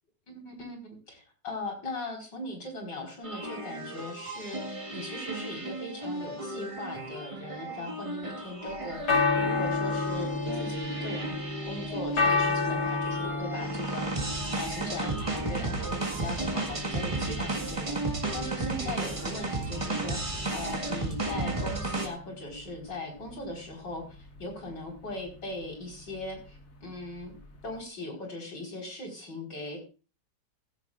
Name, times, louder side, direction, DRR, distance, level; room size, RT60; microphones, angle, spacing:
voice 1, 0.3-11.4 11.6-27.3 27.6-29.8, left 2 dB, 75° left, 2 dB, 5.2 m, -39 dB
sound 1, 3.2-22.1, right 2 dB, 20° right, 1.7 m, -34 dB
sound 2, 8.7-27.8, left 3 dB, 60° left, 2.6 m, -33 dB
15.5 x 14.0 x 2.5 m, 0.34 s
omnidirectional pair, 1.9 m